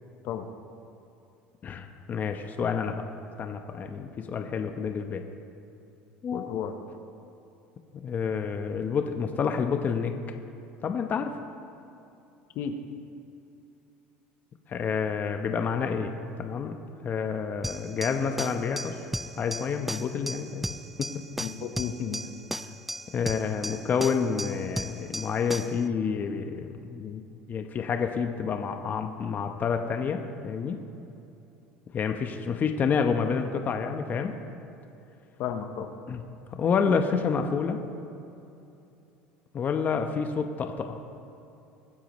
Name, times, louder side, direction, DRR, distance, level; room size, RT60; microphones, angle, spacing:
voice 1, 1.6-3.0 3.4-5.3 6.2-6.5 8.0-10.1 10.8-11.3 14.7-16.1 16.4-16.7 17.0-19.0 19.4-20.7 21.0-21.1 23.1-27.2 27.5-30.8 31.9-34.3 36.1-36.2 36.6-37.8 39.5-41.0, left 6 dB, 40° left, 5 dB, 1.0 m, -29 dB
voice 2, 6.3-6.7 12.6-12.7 21.4-22.2 35.4-35.9, left 8 dB, 60° left, 6 dB, 1.1 m, -33 dB
sound 1, 17.6-25.8, right 1 dB, 5° right, 0.5 m, -36 dB
24.0 x 9.8 x 3.2 m, 2.8 s
supercardioid pair, 85°, 5 cm